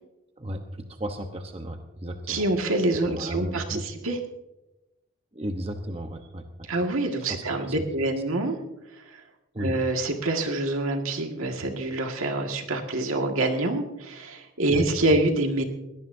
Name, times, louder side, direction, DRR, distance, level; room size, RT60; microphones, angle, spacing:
voice 1, 0.4-2.4 3.1-3.8 5.3-6.7 7.3-7.8 9.5-9.8 14.7-14.9, equal, 25° right, 5 dB, 0.9 m, -34 dB
voice 2, 2.3-4.2 6.7-8.6 9.1-9.2 9.6-15.6, right 2 dB, 80° right, 3 dB, 1.9 m, -26 dB
22.0 x 17.0 x 2.7 m, 0.96 s
head